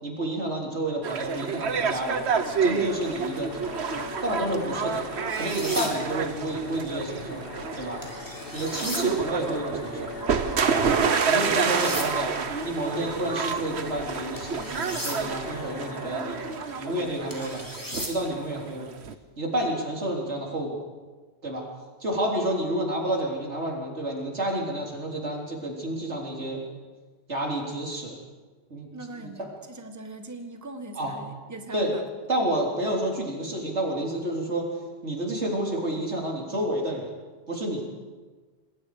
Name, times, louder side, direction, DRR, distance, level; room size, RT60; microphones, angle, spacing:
voice 1, 0.0-3.9 4.2-5.1 5.4-7.4 7.8-8.0 8.5-10.1 10.7-10.9 11.3-12.3 12.6-16.4 16.8-18.9 19.4-20.8 21.4-21.7 22.0-26.6 27.3-28.2 28.7-28.9 29.2-29.3 31.0-31.1 31.7-31.9 32.3-34.7 35.0-37.1 37.5-37.9, right 1 dB, 90° right, -1 dB, 4.1 m, -30 dB
sound 1, 1.0-19.1, right 6 dB, 75° right, 1.3 m, -29 dB
sound 2, 2.3-18.2, left 2 dB, 55° left, 1.8 m, -40 dB
sound 3, 5.3-5.9 8.0-9.0 11.2-12.1 14.4-15.2 17.3-18.1, equal, 15° left, 3.4 m, -36 dB
voice 2, 28.9-32.0, right 2 dB, 15° right, 5 dB, 1.5 m, -40 dB
27.5 x 20.5 x 5.1 m, 1.4 s
omnidirectional pair, 1.1 m